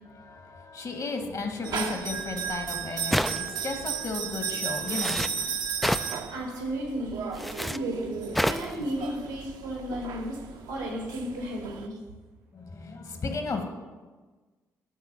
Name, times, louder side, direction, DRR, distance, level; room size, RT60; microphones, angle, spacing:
voice 1, 0.0-5.2 12.5-13.6, left 3 dB, 45° left, 6 dB, 1.3 m, -34 dB
sound 1, 1.6-11.9, right 7 dB, 55° right, 0.7 m, -35 dB
sound 2, 3.1-3.7 4.9-5.3 5.8-6.1 7.3-7.8 8.3-8.7, equal, ahead, 0.3 m, -28 dB
voice 2, 6.3-10.4 10.7-12.0, right 1 dB, 85° right, -1 dB, 1.8 m, -34 dB
12.0 x 4.0 x 5.7 m, 1.3 s
figure-of-eight pair, 40°, 8 cm